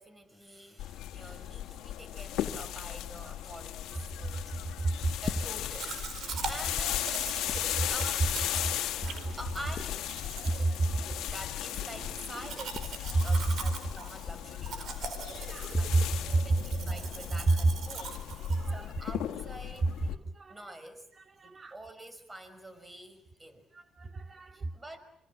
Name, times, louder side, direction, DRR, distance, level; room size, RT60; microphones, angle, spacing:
voice 1, 0.0-4.8 5.2-7.2 7.9-8.4 9.0-15.1 15.8-19.9 20.5-21.1 21.4-23.7 24.5-25.0, right 1 dB, 15° right, 5.5 m, -47 dB
sound 1, 0.8-20.2, left 12 dB, 75° left, 2.0 m, -37 dB
sound 2, 5.2-6.1 6.4-8.7 9.0-16.6 16.9-17.4, left 6 dB, 45° left, 1.3 m, -42 dB
Domestic sounds home sounds, 5.7-19.1, right 5 dB, 60° right, 4.6 m, -42 dB
voice 2, 9.0-9.4 10.3-11.2 13.1-13.2 15.1-16.0 16.3-16.4 17.5-17.6 18.5-18.8 20.1-20.7 21.4-21.7 23.7-24.7, right 2 dB, 35° right, 1.2 m, -30 dB
26.5 x 25.5 x 7.5 m
supercardioid pair, 75°, 0 cm